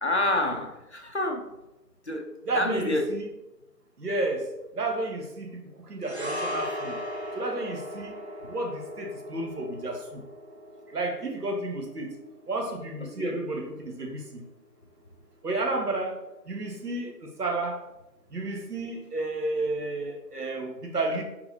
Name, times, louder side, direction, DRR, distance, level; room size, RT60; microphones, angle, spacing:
voice 1, 0.0-1.5 2.1-3.1 13.2-13.3, left 1 dB, 45° left, 3 dB, 0.5 m, -28 dB
voice 2, 2.4-3.3 4.0-4.5 4.7-7.0 7.3-10.2 10.9-12.2 12.5-14.5 15.4-16.2 16.5-17.8 18.3-21.2, right 2 dB, 70° right, 3 dB, 1.1 m, -31 dB
sound 1, 6.0-14.5 14.8-15.0, equal, 45° right, 0.5 m, -38 dB
4.2 x 4.0 x 2.8 m, 0.98 s
figure-of-eight pair, 160°, 48 cm